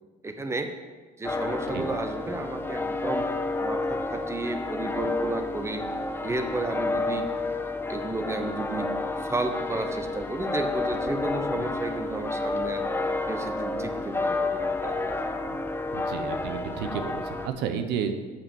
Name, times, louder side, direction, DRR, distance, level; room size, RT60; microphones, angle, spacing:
voice 1, 0.2-0.7 1.2-3.3 3.6-5.8 6.2-7.3 7.9-8.9 9.2-12.9 13.3-15.1, right 2 dB, 15° right, 7 dB, 1.0 m, -32 dB
sound 1, 1.2-17.5, left 2 dB, 15° left, 0.7 m, -30 dB
voice 2, 15.9-18.2, right 7 dB, 85° right, 8 dB, 0.9 m, -31 dB
8.1 x 5.8 x 7.1 m, 1.4 s
cardioid pair, 110°, 17 cm